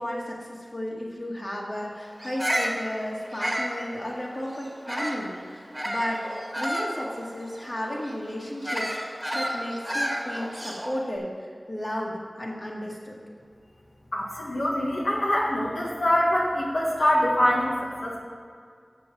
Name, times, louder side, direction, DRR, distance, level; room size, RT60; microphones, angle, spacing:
voice 1, 0.0-6.3 6.6-11.3 11.7-13.2, equal, 40° left, -2 dB, 1.9 m, -33 dB
Bird vocalization bird call bird song, 2.2-5.3 5.7-11.0, equal, 5° right, 1.5 m, -31 dB
voice 2, 14.1-17.7 18.0-18.2, left 1 dB, 85° left, -3 dB, 1.5 m, -24 dB
7.6 x 6.9 x 6.2 m, 2.1 s
wide cardioid pair, 50°, 0 cm